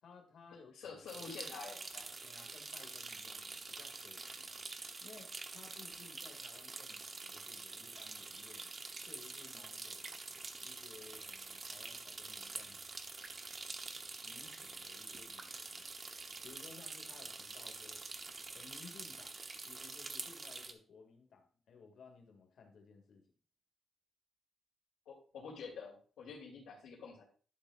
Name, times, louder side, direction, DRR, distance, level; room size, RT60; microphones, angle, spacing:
voice 1, 0.0-1.3 2.2-4.6 5.0-8.7 9.0-10.1 10.6-12.8 14.2-15.9 16.4-18.1 18.5-23.2, left 5 dB, 60° left, 5 dB, 2.1 m, -59 dB
voice 2, 0.7-2.1 25.0-27.2, left 5 dB, 85° left, -6 dB, 2.9 m, -48 dB
sound 1, 1.1-20.7, right 3 dB, 30° right, 0.8 m, -47 dB
11.5 x 6.9 x 2.4 m, 0.40 s
wide cardioid pair, 155°, 0 cm